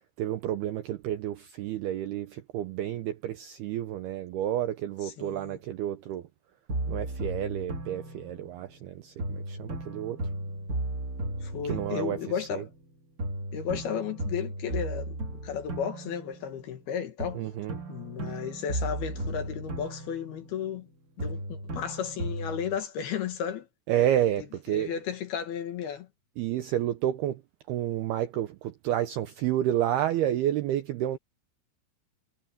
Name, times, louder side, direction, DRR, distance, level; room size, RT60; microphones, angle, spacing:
voice 1, 0.2-6.3 6.9-10.2 11.7-12.6 17.4-17.8 23.9-24.9 26.4-27.4 27.7-31.2, right 11 dB, 80° right, 2.3 m, -30 dB
voice 2, 5.0-5.6 11.4-12.7 13.5-15.2 15.4-17.4 17.9-20.9 21.2-23.7 24.7-26.1, left 8 dB, 65° left, 3.0 m, -34 dB
sound 1, 6.7-8.8 9.2-12.9 13.2-16.8 17.2-20.9 21.2-22.8, right 1 dB, 45° right, 1.1 m, -36 dB
omnidirectional pair, 5.7 m